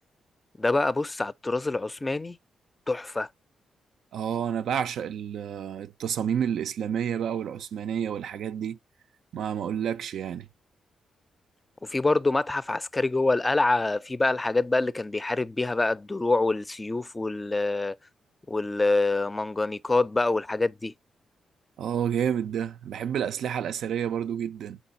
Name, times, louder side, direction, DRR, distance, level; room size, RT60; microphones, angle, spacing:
voice 1, 0.6-2.4 2.9-3.3 11.8-18.0 18.5-20.9, left 2 dB, 25° left, 0.4 m, -26 dB
voice 2, 4.1-8.8 9.3-10.5 21.8-24.8, right 8 dB, 75° right, 0.3 m, -29 dB
4.2 x 3.7 x 2.6 m
supercardioid pair, 45°, 0 cm